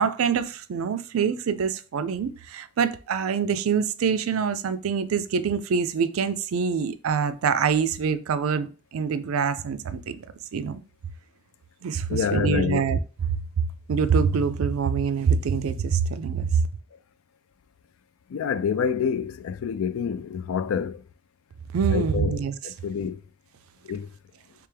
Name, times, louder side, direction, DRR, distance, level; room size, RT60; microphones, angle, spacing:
voice 1, 0.0-10.2 10.5-10.8 11.8-13.0 13.3-16.6 21.7-22.5, right 6 dB, 85° right, 0.4 m, -25 dB
voice 2, 12.1-12.8 18.3-21.0 21.9-23.2 23.9-24.1, left 6 dB, 80° left, 0.3 m, -27 dB
3.4 x 3.3 x 3.3 m
head